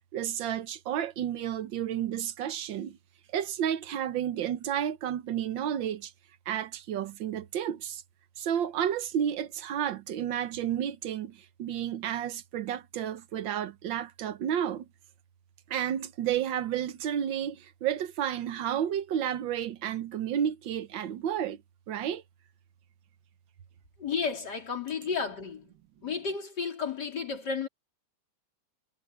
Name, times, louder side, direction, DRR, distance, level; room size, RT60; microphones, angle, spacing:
voice 1, 0.1-3.0 3.3-6.1 6.5-8.0 8.4-14.9 15.7-21.6 21.9-22.2, right 10 dB, 90° right, 1.7 m, -31 dB
voice 2, 24.0-25.7 26.0-27.7, left 5 dB, 65° left, 3.9 m, -32 dB
omnidirectional pair, 2.0 m